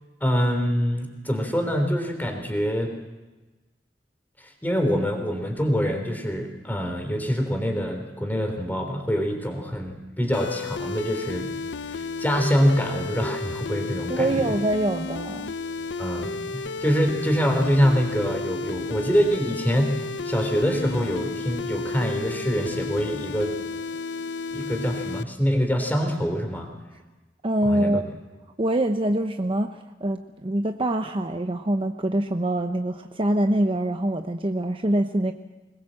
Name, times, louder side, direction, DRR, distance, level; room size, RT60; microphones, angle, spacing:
voice 1, 0.2-2.9 4.6-11.5 12.2-14.5 16.0-23.6 24.5-26.7 27.6-28.0, equal, 10° left, 4 dB, 3.4 m, -25 dB
sound 1, 10.3-25.2, left 4 dB, 80° left, 0.7 m, -33 dB
voice 2, 14.1-15.6 27.4-28.1 28.6-35.3, right 1 dB, 30° right, 6 dB, 0.8 m, -24 dB
21.0 x 21.0 x 7.6 m, 1.2 s
head